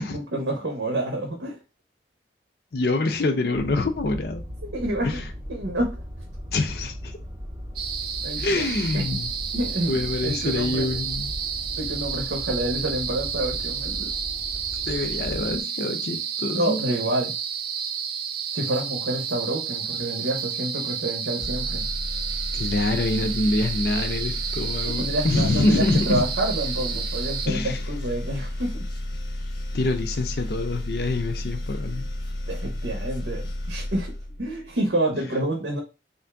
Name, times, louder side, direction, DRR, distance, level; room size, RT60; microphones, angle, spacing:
voice 1, 0.0-1.6 4.7-5.2 5.5-6.0 8.2-8.7 8.9-9.0 9.5-10.9 11.7-14.1 16.5-17.3 18.5-21.9 24.8-28.8 32.5-35.8, right 1 dB, 85° right, 1 dB, 0.8 m, -28 dB
voice 2, 2.7-4.4 5.0-5.2 6.5-7.2 8.4-9.3 9.9-11.3 14.9-16.8 22.5-26.2 27.5-27.8 29.7-32.1, left 2 dB, 55° left, 5 dB, 0.5 m, -25 dB
sound 1, 3.5-15.6, equal, 15° right, 0.7 m, -37 dB
sound 2, 7.8-27.5, right 7 dB, 55° right, 0.4 m, -31 dB
sound 3, 21.4-34.8, left 1 dB, 85° left, 0.9 m, -32 dB
3.5 x 2.6 x 3.4 m, 0.29 s
head